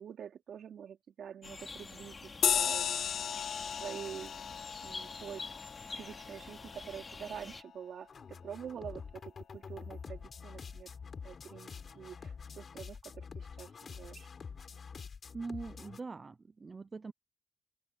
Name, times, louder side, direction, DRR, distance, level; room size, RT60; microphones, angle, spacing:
voice 1, 0.0-3.1 3.8-4.4 4.8-5.4 5.9-10.9 11.2-14.3, right 8 dB, 75° right, 4.2 m, -46 dB
sound 1, 1.4-7.6, left 3 dB, 30° left, 2.7 m, -47 dB
sound 2, 2.4-7.3, left 8 dB, 75° left, 0.4 m, -35 dB
sound 3, 8.1-16.0, left 5 dB, 45° left, 5.5 m, -47 dB
voice 2, 15.3-17.1, right 4 dB, 30° right, 0.5 m, -42 dB
open air
wide cardioid pair, 140°, 0 cm